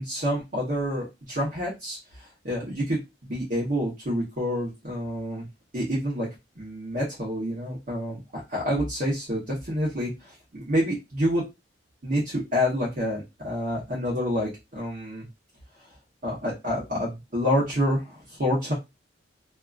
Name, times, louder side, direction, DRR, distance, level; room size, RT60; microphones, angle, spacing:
voice 1, 0.0-3.0 3.3-5.4 5.7-6.3 6.6-11.4 12.0-15.2 16.2-18.7, equal, 50° right, -5 dB, 1.0 m, -28 dB
2.8 x 2.4 x 2.4 m, 0.23 s
head